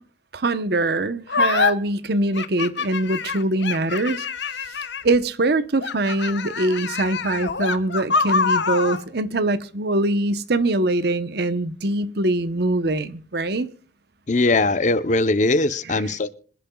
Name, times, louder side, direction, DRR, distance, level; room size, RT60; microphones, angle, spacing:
voice 1, 0.3-4.2 5.0-13.7 15.9-16.1, right 2 dB, 60° right, 0.9 m, -23 dB
sound 1, 1.3-1.7 2.4-5.2 5.8-9.0, left 5 dB, 75° left, 1.1 m, -25 dB
voice 2, 14.3-16.3, left 2 dB, 45° left, 0.8 m, -20 dB
26.0 x 10.5 x 2.3 m
head